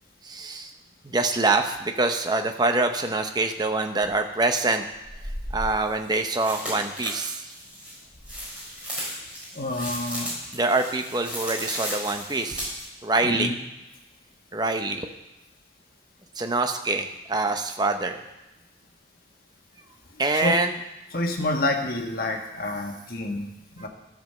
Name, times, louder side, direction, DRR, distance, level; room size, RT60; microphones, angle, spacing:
voice 1, 0.2-0.7 1.0-4.8 5.5-7.5 10.5-12.7 13.0-13.5 14.5-15.1 16.4-18.2 20.2-20.7, right 2 dB, 20° right, 5 dB, 0.7 m, -25 dB
sound 1, 4.0-4.1 5.0-12.8, equal, 5° right, 4.7 m, -35 dB
voice 2, 9.5-10.4 13.2-13.5 20.1-20.5 21.1-23.9, left 2 dB, 50° left, 2 dB, 1.4 m, -28 dB
12.5 x 5.3 x 6.6 m, 0.97 s
head